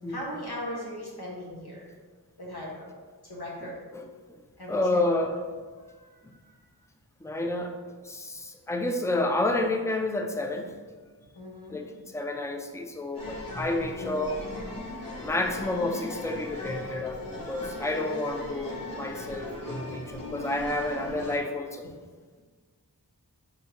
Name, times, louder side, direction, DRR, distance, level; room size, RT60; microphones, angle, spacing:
voice 1, 0.1-1.9 2.4-2.9 3.2-3.8 4.6-5.3 5.8-6.4 11.3-11.8 13.3-13.4, equal, 75° left, -4 dB, 1.3 m, -39 dB
voice 2, 4.7-5.4 7.2-7.7 8.0-10.7 11.7-14.4 15.2-21.9, left 2 dB, 10° left, 4 dB, 0.4 m, -30 dB
sound 1, 13.1-21.4, left 1 dB, 60° left, 1.1 m, -38 dB
4.8 x 3.6 x 2.9 m, 1.5 s
wide cardioid pair, 50°, 39 cm